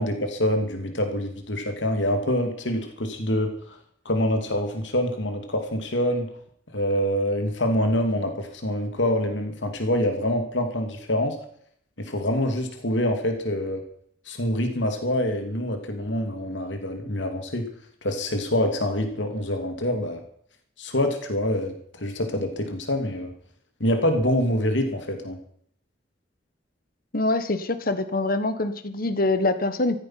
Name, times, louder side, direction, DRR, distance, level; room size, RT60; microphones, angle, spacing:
voice 1, 0.0-3.8 4.0-6.3 6.7-11.4 12.0-13.8 14.3-17.7 18.0-20.2 20.8-23.3 23.8-25.4, left 1 dB, 80° left, 5 dB, 2.8 m, -25 dB
voice 2, 27.1-30.0, left 2 dB, 50° left, 11 dB, 1.5 m, -24 dB
15.0 x 14.5 x 5.9 m, 0.64 s
head